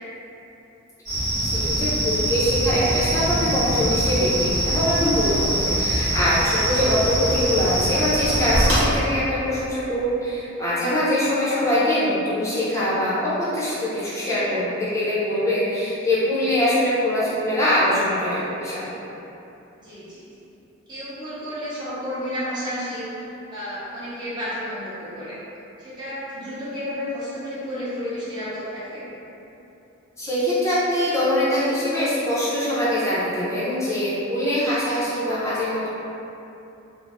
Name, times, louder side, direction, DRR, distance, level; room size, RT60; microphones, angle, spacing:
sound 1, 1.1-8.8, right 1 dB, 75° right, 1.1 m, -23 dB
voice 1, 1.4-18.8 30.2-35.9, left 1 dB, 15° left, -10 dB, 0.6 m, -23 dB
voice 2, 19.8-20.3 20.9-23.1 23.5-25.4 25.8-29.1, equal, 20° right, -11 dB, 0.7 m, -31 dB
2.6 x 2.0 x 3.4 m, 2.9 s
head